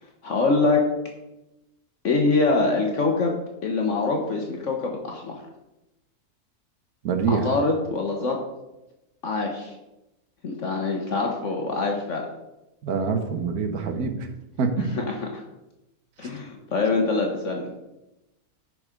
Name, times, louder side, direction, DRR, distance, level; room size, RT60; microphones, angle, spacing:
voice 1, 0.2-0.9 2.0-3.3 3.6-5.4 7.3-8.4 9.2-9.7 10.4-12.3 14.8-15.4 16.2-17.7, left 3 dB, 55° left, 1 dB, 1.3 m, -24 dB
voice 2, 7.0-7.4 12.8-14.3 14.6-14.9, right 5 dB, 85° right, 6 dB, 1.6 m, -25 dB
11.0 x 4.8 x 5.1 m, 0.96 s
omnidirectional pair, 1.6 m